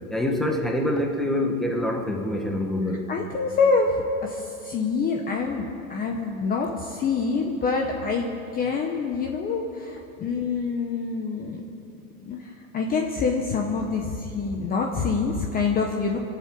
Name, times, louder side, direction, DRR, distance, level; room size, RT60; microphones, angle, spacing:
voice 1, 0.1-3.1, left 1 dB, ahead, 2 dB, 1.2 m, -25 dB
voice 2, 3.1-11.6 12.3-16.2, left 4 dB, 20° left, 2 dB, 0.9 m, -26 dB
22.0 x 7.6 x 8.7 m, 2.7 s
supercardioid pair, 140°, 44 cm